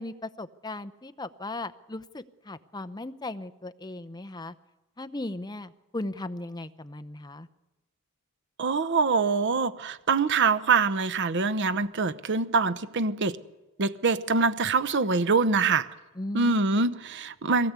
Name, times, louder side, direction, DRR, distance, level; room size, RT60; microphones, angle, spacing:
voice 1, 0.0-4.5 5.0-7.5 16.2-16.6, left 2 dB, 20° left, 0.8 m, -37 dB
voice 2, 8.6-13.4 13.8-15.9 16.3-17.7, right 4 dB, 55° right, 0.9 m, -24 dB
22.5 x 17.5 x 8.2 m
head